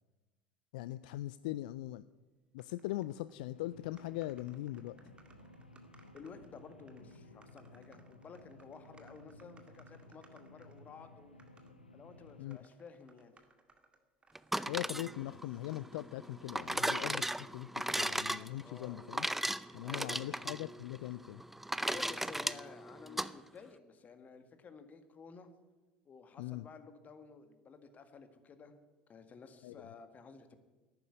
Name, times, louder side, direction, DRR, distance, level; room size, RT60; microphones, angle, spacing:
voice 1, 0.7-2.0 2.5-5.0 12.4-12.6 14.7-19.3 19.7-21.4 26.4-26.6 29.6-29.9, left 16 dB, 65° left, 16 dB, 0.4 m, -41 dB
sound 1, 2.6-3.4 3.6-3.7 4.0-10.9 11.4-11.7 12.3-15.1 15.5-16.3, right 3 dB, 20° right, 2.1 m, -66 dB
sound 2, 3.5-12.4, left 1 dB, 90° left, 0.9 m, -57 dB
voice 2, 6.1-11.4 11.9-13.3 18.5-19.0 19.8-20.3 21.8-25.5 26.1-28.7 29.1-30.6, left 5 dB, 30° left, 9 dB, 1.8 m, -53 dB
sound 3, 14.4-23.3, right 1 dB, 5° right, 0.5 m, -37 dB
11.5 x 9.4 x 9.6 m, 1.2 s
figure-of-eight pair, 70°, 5 cm